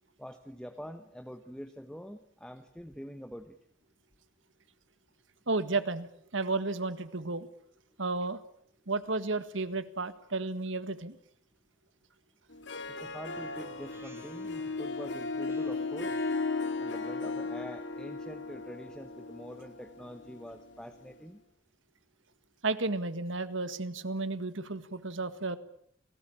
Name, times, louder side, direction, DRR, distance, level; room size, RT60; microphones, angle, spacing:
voice 1, 0.2-3.6 12.9-16.2 16.8-21.4, equal, 5° left, 8 dB, 1.1 m, -45 dB
voice 2, 5.5-7.5 8.0-8.4 8.9-11.2 22.6-25.6, right 3 dB, 75° right, 12 dB, 1.8 m, -32 dB
Harp, 12.5-21.1, left 3 dB, 65° left, 2.5 m, -36 dB
Speech synthesizer, 13.3-16.7, right 1 dB, 10° right, 1.9 m, -56 dB
28.5 x 19.0 x 8.8 m, 0.68 s
head